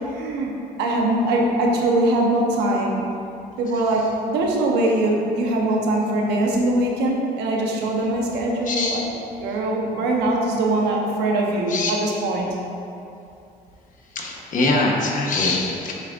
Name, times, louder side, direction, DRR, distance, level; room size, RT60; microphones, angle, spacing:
voice 1, 0.1-3.0 3.6-9.1 9.4-12.5, right 1 dB, 85° right, -1 dB, 1.0 m, -22 dB
voice 2, 8.7-9.0 11.7-11.9 14.1-15.9, left 2 dB, 50° left, 0 dB, 1.1 m, -22 dB
7.3 x 6.2 x 2.5 m, 2.7 s
cardioid pair, 110°, 17 cm